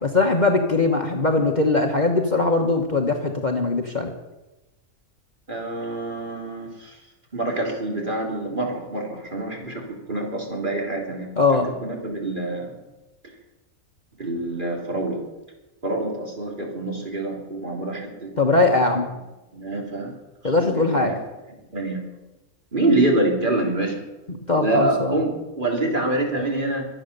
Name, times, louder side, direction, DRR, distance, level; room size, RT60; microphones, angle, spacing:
voice 1, 0.0-4.1 11.4-11.7 18.4-19.1 20.4-21.1 24.3-25.2, left 3 dB, 35° left, 3 dB, 1.3 m, -21 dB
voice 2, 5.5-6.9 7.3-11.3 11.8-12.8 14.2-15.2 15.8-18.3 18.7-18.8 19.5-20.2 20.4-21.2 21.7-22.0 22.7-24.0 24.6-26.9, right 2 dB, 35° right, 0 dB, 3.5 m, -26 dB
23.5 x 8.8 x 6.8 m, 1.0 s
omnidirectional pair, 1.4 m